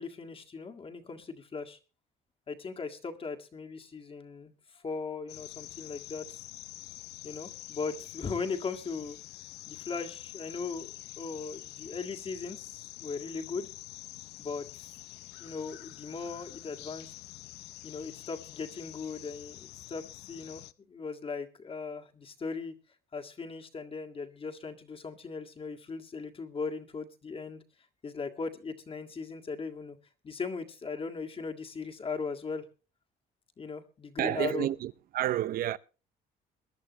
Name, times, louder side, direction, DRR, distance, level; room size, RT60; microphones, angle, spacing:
voice 1, 0.0-1.8 2.5-6.4 7.2-9.2 9.7-13.7 14.4-14.9 15.4-17.1 17.8-22.7 23.1-27.6 28.0-30.0 30.2-32.7 33.6-34.7, left 4 dB, 35° left, 1.8 m, -38 dB
sound 1, 5.3-20.7, left 16 dB, 85° left, 0.6 m, -47 dB
voice 2, 34.2-35.8, right 12 dB, 60° right, 0.7 m, -30 dB
22.5 x 11.0 x 2.9 m
cardioid pair, 110°, 17 cm